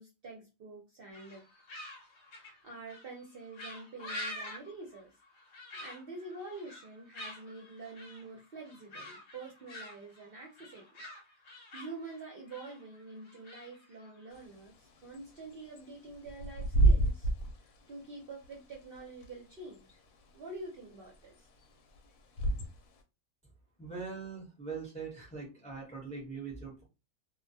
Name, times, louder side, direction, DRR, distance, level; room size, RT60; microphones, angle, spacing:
voice 1, 0.0-1.5 2.4-5.1 5.8-11.0 11.5-14.7 15.0-17.3 17.6-20.0 20.3-21.5, right 3 dB, 55° right, -1 dB, 0.7 m, -47 dB
sound 1, 1.1-14.4, left 1 dB, 60° left, 0.9 m, -47 dB
Bird / Wind, 14.3-23.0, right 2 dB, 90° left, 1.0 m, -32 dB
voice 2, 23.8-26.8, right 5 dB, 5° left, -2 dB, 0.6 m, -42 dB
2.3 x 2.1 x 2.6 m, 0.27 s
omnidirectional pair, 1.4 m